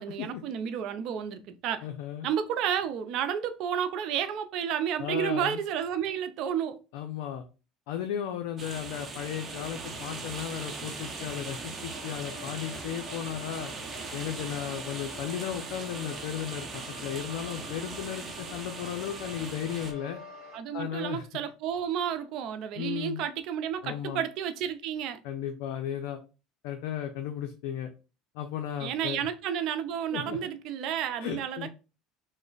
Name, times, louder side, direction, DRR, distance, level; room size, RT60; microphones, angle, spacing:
voice 1, 0.0-1.9 2.2-6.8 20.5-25.2 28.8-31.7, right 9 dB, 60° right, 0.4 m, -31 dB
voice 2, 1.8-2.3 5.0-5.6 6.9-7.5 7.9-13.7 14.1-20.2 20.7-21.2 22.8-23.2 23.8-24.2 25.2-26.2 26.6-27.9 28.3-29.3 30.1-30.4 31.2-31.7, left 9 dB, 75° left, 0.4 m, -35 dB
sound 1, 8.6-19.9, right 4 dB, 30° right, 0.7 m, -40 dB
sound 2, 11.9-20.6, left 3 dB, 55° left, 1.1 m, -48 dB
3.2 x 2.0 x 3.8 m
supercardioid pair, 105°, 0 cm